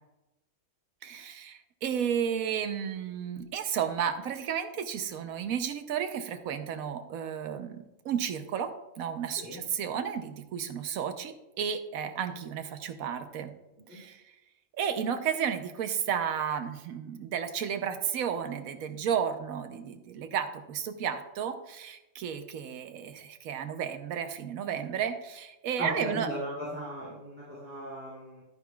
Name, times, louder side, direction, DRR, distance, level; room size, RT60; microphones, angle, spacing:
voice 1, 1.0-8.7 9.0-13.5 13.9-14.2 14.7-26.3, right 8 dB, 90° right, 9 dB, 1.2 m, -33 dB
voice 2, 25.8-28.4, right 1 dB, 10° right, -8 dB, 2.6 m, -37 dB
10.5 x 9.5 x 2.3 m, 0.99 s
omnidirectional pair, 1.4 m